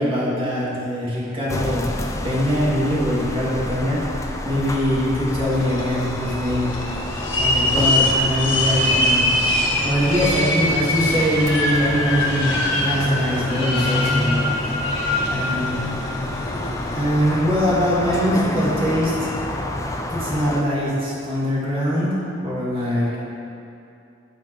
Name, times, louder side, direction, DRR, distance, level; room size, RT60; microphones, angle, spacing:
voice 1, 0.0-1.8 2.2-6.8 7.4-9.3 9.8-14.5 15.2-15.8 16.9-19.3 20.1-23.2, equal, 30° right, -7 dB, 2.5 m, -22 dB
sound 1, 1.5-20.6, left 1 dB, 15° left, 0.6 m, -28 dB
sound 2, 5.5-17.0, left 1 dB, 75° left, 1.9 m, -24 dB
15.5 x 5.7 x 4.8 m, 2.7 s
head